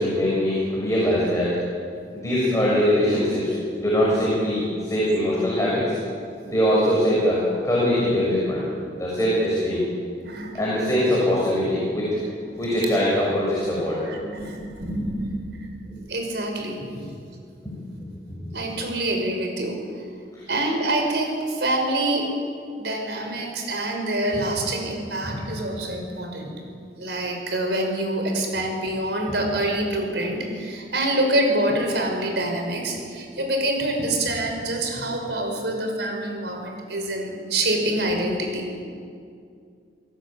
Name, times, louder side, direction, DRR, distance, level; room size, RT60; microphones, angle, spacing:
voice 1, 0.0-1.6 2.1-6.0 6.4-7.4 7.6-8.6 9.0-9.9 10.5-12.1 12.6-14.0 14.4-14.5 18.4-18.5 25.3-25.4 26.4-26.5, equal, 20° left, -6 dB, 6.8 m, -22 dB
voice 2, 10.2-10.6 12.5-12.9 14.1-15.7 16.1-16.8 18.5-19.8 20.5-22.3 22.8-26.5 27.0-38.8, right 1 dB, 70° right, 3 dB, 5.9 m, -26 dB
29.5 x 18.0 x 9.0 m, 2.3 s
head